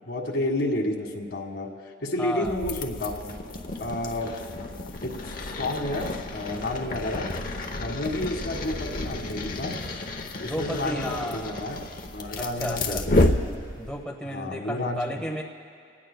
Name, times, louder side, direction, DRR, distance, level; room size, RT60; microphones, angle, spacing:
voice 1, 0.1-1.7 2.0-3.3 3.8-4.3 5.0-5.1 5.5-7.3 7.8-9.8 10.4-11.8 12.1-13.2 14.3-15.2, left 1 dB, 75° left, 1 dB, 1.8 m, -30 dB
voice 2, 2.2-2.5 10.4-11.5 12.4-13.0 13.8-15.4, equal, 5° left, -1 dB, 1.1 m, -33 dB
sound 1, 2.4-14.0, left 2 dB, 50° left, 0.9 m, -30 dB
28.5 x 18.5 x 2.3 m, 2.4 s
head